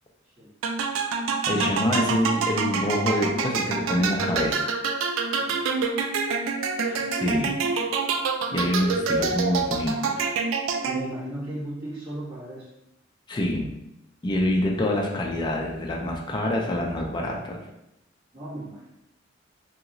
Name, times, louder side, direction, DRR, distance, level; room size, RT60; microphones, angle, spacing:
sound 1, 0.6-11.3, right 4 dB, 75° right, 0.3 m, -27 dB
voice 1, 1.5-4.7 6.7-7.6 8.5-10.3 13.3-13.7 14.2-17.6, left 1 dB, 20° left, -1 dB, 0.4 m, -26 dB
voice 2, 5.3-5.6 6.9-7.5 10.8-12.7 18.3-18.9, right 1 dB, 55° right, -10 dB, 1.4 m, -37 dB
2.9 x 2.8 x 2.6 m, 0.85 s
head